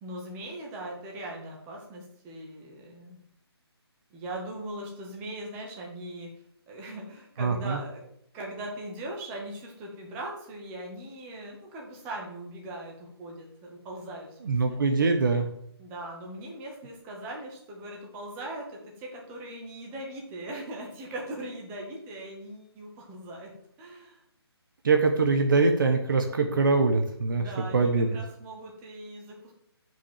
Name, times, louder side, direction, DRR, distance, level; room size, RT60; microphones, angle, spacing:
voice 1, 0.0-3.2 4.1-6.3 6.7-8.0 8.3-14.8 15.8-23.5 23.8-24.2 27.3-29.5, right 1 dB, 15° right, -1 dB, 1.9 m, -40 dB
voice 2, 7.4-7.8 14.5-15.5 24.8-27.5 27.7-28.1, right 4 dB, 50° right, 5 dB, 1.2 m, -23 dB
7.1 x 6.2 x 7.3 m, 0.72 s
hypercardioid pair, 165°, 14 cm